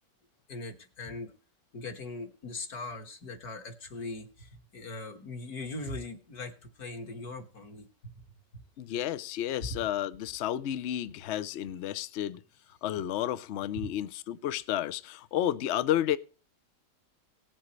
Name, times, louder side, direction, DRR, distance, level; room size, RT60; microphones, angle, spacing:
voice 1, 0.5-1.3 1.7-8.2 8.5-8.6, left 2 dB, 55° left, 2.0 m, -40 dB
voice 2, 8.8-12.4 12.8-16.2, left 11 dB, 85° left, 0.6 m, -31 dB
19.0 x 7.5 x 3.1 m
omnidirectional pair, 1.9 m